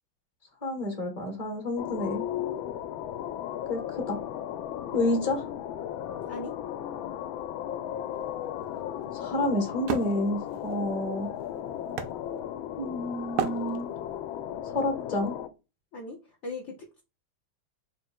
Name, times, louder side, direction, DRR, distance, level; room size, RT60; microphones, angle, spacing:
voice 1, 0.6-2.2 3.7-4.2 4.9-5.5 9.1-11.3 12.8-13.9 14.7-15.3, left 1 dB, 25° left, 3 dB, 1.0 m, -29 dB
sound 1, 1.8-15.5, left 10 dB, 80° left, 1.3 m, -36 dB
Wood, 8.1-12.8 13.3-14.2, right 8 dB, 85° right, 0.7 m, -35 dB
voice 2, 15.9-17.0, left 2 dB, 65° left, 0 dB, 0.7 m, -39 dB
3.8 x 2.5 x 4.3 m, 0.29 s
omnidirectional pair, 2.2 m